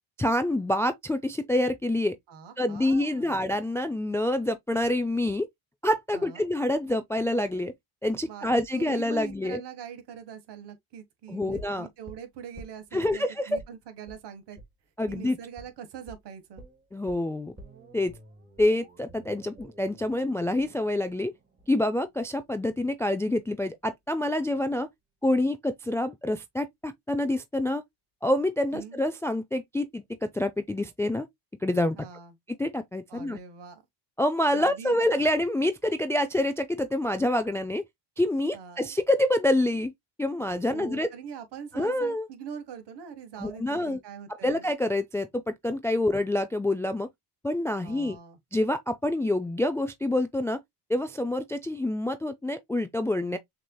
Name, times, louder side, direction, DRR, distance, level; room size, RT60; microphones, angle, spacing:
voice 1, 0.2-2.2 2.6-5.5 5.8-7.7 8.0-9.6 11.3-11.9 12.9-13.6 15.0-15.4 16.9-17.5 17.9-18.1 18.6-21.3 21.7-24.9 25.2-27.8 28.2-31.3 31.6-32.0 32.6-33.4 34.2-37.8 38.2-39.9 40.2-41.1 41.7-42.3 43.4-44.0 44.3-47.1 47.4-48.2 48.5-50.6 50.9-53.4, left 1 dB, 5° left, 0.4 m, -27 dB
voice 2, 2.3-3.4 6.1-6.5 8.3-8.5 8.7-14.6 15.1-16.6 28.7-29.0 32.0-32.3 33.1-33.8 34.5-35.3 38.5-38.9 40.7-44.6 47.8-48.4, right 7 dB, 55° right, 1.5 m, -43 dB
sound 1, 11.5-13.2 13.6-13.8 14.1-14.2 14.6-14.7 15.1-15.2 15.6-15.8 16.1-16.2 16.6-22.6 22.9-23.0, right 1 dB, 20° right, 1.6 m, -49 dB
6.2 x 3.0 x 2.2 m
supercardioid pair, 100°, 48 cm